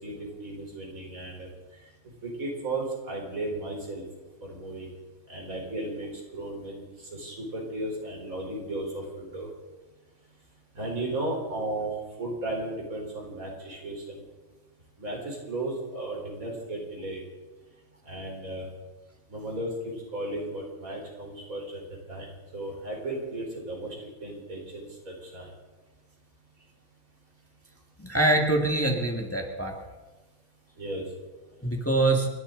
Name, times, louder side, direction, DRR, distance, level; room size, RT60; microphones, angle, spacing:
voice 1, 0.0-1.5 2.2-4.0 4.4-4.9 5.3-9.5 10.7-11.9 12.2-14.2 15.0-17.2 18.1-18.7 19.3-21.8 22.1-25.5 30.8-31.0, right 2 dB, 70° right, -1 dB, 4.5 m, -35 dB
voice 2, 28.0-29.7 31.6-32.3, right 2 dB, 10° left, 1 dB, 1.8 m, -24 dB
29.0 x 12.0 x 3.9 m, 1.3 s
omnidirectional pair, 1.5 m